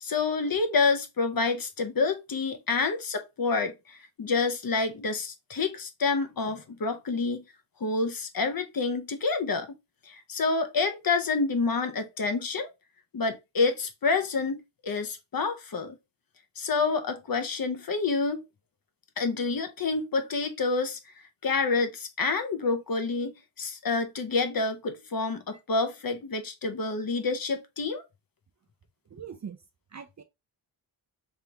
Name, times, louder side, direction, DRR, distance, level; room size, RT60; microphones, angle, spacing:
voice 1, 0.0-7.4 7.8-9.7 10.1-12.7 13.1-16.0 16.6-18.4 19.2-21.0 21.4-28.0, left 4 dB, 45° left, 0.7 m, -28 dB
voice 2, 29.1-29.6 29.9-30.2, right 7 dB, 40° right, 0.4 m, -41 dB
3.5 x 3.4 x 2.8 m
wide cardioid pair, 95°, 48 cm